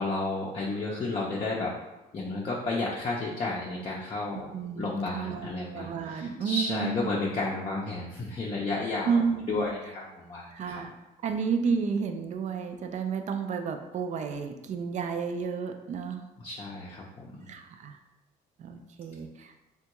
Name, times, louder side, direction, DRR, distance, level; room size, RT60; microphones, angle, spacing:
voice 1, 0.0-1.7 2.1-4.5 4.8-9.2 9.4-10.8 16.4-17.0 17.3-17.5, left 3 dB, 35° left, -4 dB, 0.5 m, -32 dB
voice 2, 4.5-7.1 9.0-9.7 10.5-11.0 11.2-16.2 17.5-18.0 18.6-19.5, right 5 dB, 45° right, 6 dB, 0.4 m, -31 dB
3.4 x 2.2 x 2.9 m, 0.98 s
cardioid pair, 110°, 17 cm